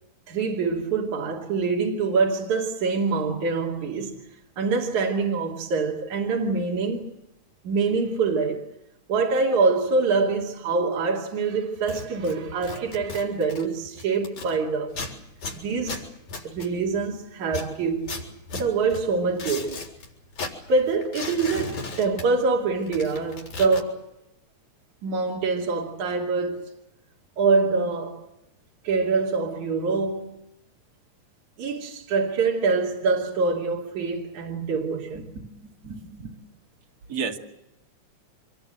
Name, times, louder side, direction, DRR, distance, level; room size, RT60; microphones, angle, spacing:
voice 1, 0.3-4.1 4.6-7.1 7.6-8.6 9.1-14.9 15.5-16.0 16.4-18.1 18.5-19.9 20.7-24.0 25.0-26.7 27.4-28.2 28.8-30.3 31.6-35.3, right 4 dB, 75° right, 4.0 m, -25 dB
sound 1, 11.8-14.6 14.9-17.1 17.5-20.1 20.3-22.6 22.8-23.8, left 3 dB, 75° left, 5.6 m, -36 dB
voice 2, 35.8-36.3 37.1-37.4, right 5 dB, 30° right, 2.5 m, -32 dB
26.5 x 21.5 x 7.9 m
omnidirectional pair, 3.4 m